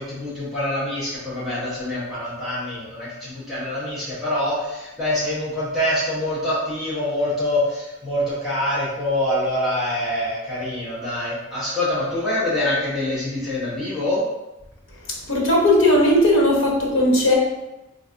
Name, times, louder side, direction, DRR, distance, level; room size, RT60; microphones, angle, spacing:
voice 1, 0.0-14.2, left 1 dB, ahead, -12 dB, 1.0 m, -25 dB
voice 2, 15.3-17.3, left 1 dB, 75° left, -2 dB, 0.9 m, -17 dB
3.9 x 2.6 x 2.5 m, 0.99 s
head